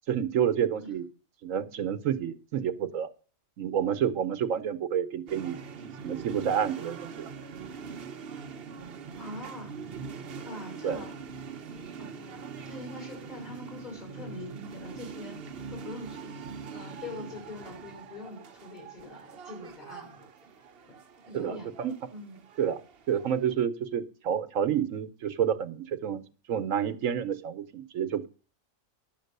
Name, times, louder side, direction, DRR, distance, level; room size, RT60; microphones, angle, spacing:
voice 1, 0.1-1.0 1.4-3.1 3.6-5.6 5.8-7.3 10.8-11.0 21.3-21.9 22.6-22.8 23.1-26.2 26.5-28.3, right 8 dB, 80° right, 12 dB, 1.2 m, -29 dB
sound 1, 5.3-23.6, right 5 dB, 50° right, 1.0 m, -43 dB
voice 2, 9.2-9.7 10.4-11.1 12.0-15.4 15.7-16.4 16.7-20.3 20.9-21.0 21.2-21.7 22.1-22.4, left 2 dB, 35° left, 1 dB, 5.6 m, -43 dB
10.5 x 7.3 x 6.6 m, 0.38 s
omnidirectional pair, 1.4 m